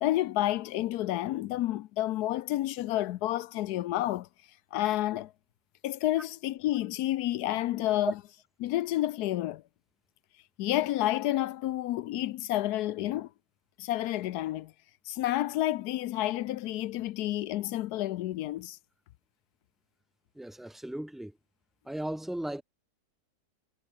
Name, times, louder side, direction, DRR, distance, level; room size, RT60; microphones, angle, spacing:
voice 1, 0.0-4.3 4.7-5.3 5.8-8.1 8.6-9.6 10.6-13.3 13.8-14.7 15.1-18.8, left 14 dB, 80° left, 1.1 m, -30 dB
voice 2, 20.4-21.3 21.9-22.6, right 1 dB, ahead, 1.0 m, -35 dB
omnidirectional pair, 1.7 m